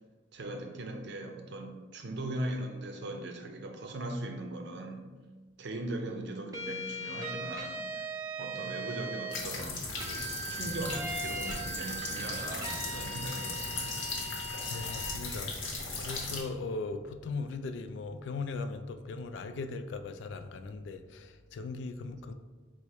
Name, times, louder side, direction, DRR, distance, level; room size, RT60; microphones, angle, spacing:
voice 1, 0.3-5.1 5.6-8.1 8.4-14.1, right 1 dB, 60° right, 0.6 m, -39 dB
sound 1, 6.5-9.4 10.0-15.1, right 2 dB, 20° right, 0.6 m, -39 dB
sound 2, 9.3-16.4, left 3 dB, 90° left, 0.9 m, -38 dB
voice 2, 14.7-22.3, left 3 dB, 65° left, 0.3 m, -39 dB
4.8 x 2.1 x 4.1 m
head